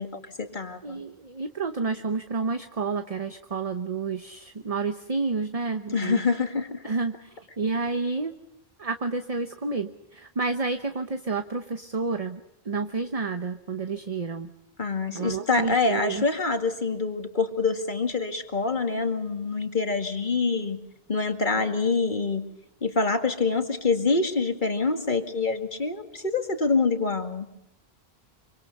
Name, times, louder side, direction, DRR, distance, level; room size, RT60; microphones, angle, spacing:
voice 1, 0.0-1.0 5.9-6.8 14.8-20.8 21.1-22.4 22.8-27.5, left 4 dB, 50° left, 6 dB, 2.3 m, -26 dB
voice 2, 0.8-6.2 6.8-8.3 8.8-14.5 15.1-16.2, right 4 dB, 35° right, 8 dB, 1.0 m, -30 dB
25.5 x 25.0 x 5.5 m, 0.83 s
omnidirectional pair, 1.1 m